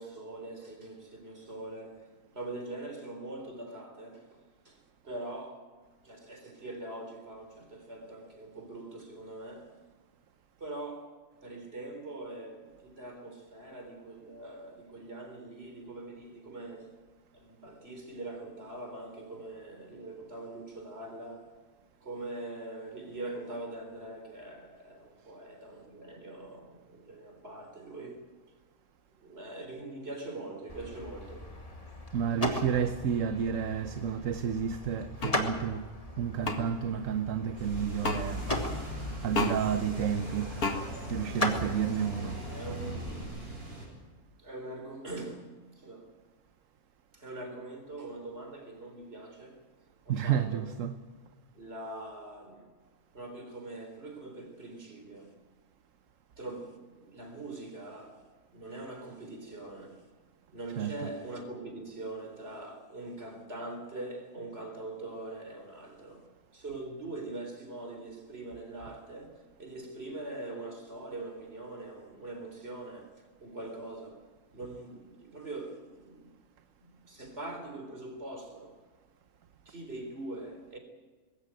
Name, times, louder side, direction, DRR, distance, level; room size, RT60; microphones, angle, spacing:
voice 1, 0.0-5.7 6.0-9.8 10.6-11.1 11.4-16.9 17.3-21.6 22.0-28.3 29.2-31.5 42.5-43.3 44.4-46.1 47.1-49.6 50.1-50.7 51.5-52.7 53.1-55.4 56.4-58.2 58.5-60.1 60.5-74.3 74.5-76.4 76.8-78.8 79.7-80.8, right 2 dB, 45° right, 4.3 m, -43 dB
sound 1, 30.7-43.2, left 1 dB, 25° left, 2.3 m, -38 dB
voice 2, 32.1-35.9 36.2-38.5 39.2-40.6 41.1-42.4 50.1-51.0 60.8-61.1, right 8 dB, 65° right, 1.2 m, -31 dB
sound 2, 35.2-35.4 36.4-36.6 38.0-38.2 39.3-39.6 40.6-40.8, left 3 dB, 85° left, 2.4 m, -29 dB
sound 3, 37.6-43.8, right 1 dB, 85° right, 7.9 m, -39 dB
21.0 x 17.0 x 9.1 m
omnidirectional pair, 1.5 m